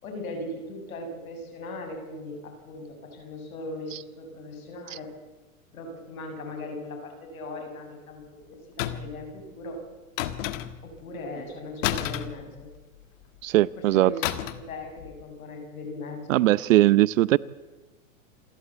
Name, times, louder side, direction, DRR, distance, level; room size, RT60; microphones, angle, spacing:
voice 1, 0.0-5.1 5.7-9.8 10.8-12.7 13.8-14.2 14.5-16.5, left 2 dB, 80° left, 5 dB, 6.7 m, -39 dB
sound 1, 8.8-9.2 10.2-10.9 11.8-13.0 14.2-14.7 15.0-15.2, left 12 dB, 60° left, 1.7 m, -31 dB
voice 2, 13.4-14.1 16.3-17.4, right 15 dB, 65° right, 21 dB, 0.8 m, -19 dB
27.5 x 12.0 x 8.2 m, 1.2 s
hypercardioid pair, 120°, 41 cm